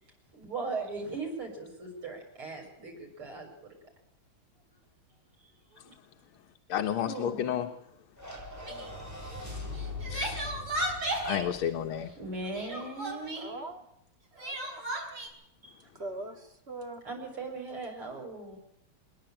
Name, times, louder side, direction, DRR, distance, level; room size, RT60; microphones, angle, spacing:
voice 1, 0.3-3.8 5.4-5.9 7.1-7.4 8.9-9.0 9.3-9.4 10.2-10.3 12.2-13.6 16.3-16.4 17.0-18.6, right 3 dB, 85° right, 0 dB, 8.2 m, -39 dB
voice 2, 6.7-7.7 9.5-9.7 10.1-10.6 11.2-12.1, left 10 dB, 90° left, 5 dB, 2.0 m, -31 dB
sound 1, 8.2-12.6, left 3 dB, 5° right, 6.3 m, -42 dB
Crying sobbing, 8.6-8.9 9.7-11.5 12.5-13.5 14.4-15.3, right 1 dB, 45° right, 5.8 m, -34 dB
voice 3, 13.4-13.8 14.3-14.9 15.6-17.0, right 2 dB, 30° right, 4 dB, 2.9 m, -42 dB
27.0 x 11.0 x 9.0 m, 0.78 s
omnidirectional pair, 2.3 m